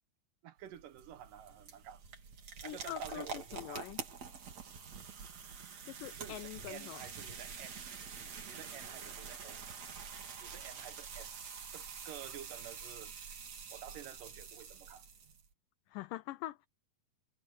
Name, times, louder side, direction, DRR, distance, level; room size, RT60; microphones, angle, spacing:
voice 1, 0.4-2.0 2.6-3.9 6.1-7.9 8.4-9.8 10.4-11.4 11.7-13.4 13.7-15.1, right 11 dB, 70° right, 2.3 m, -51 dB
sound 1, 0.6-15.5, right 6 dB, 50° right, 3.6 m, -47 dB
voice 2, 2.6-4.0 5.9-7.0 15.9-16.7, left 16 dB, 90° left, 1.9 m, -44 dB
omnidirectional pair, 4.4 m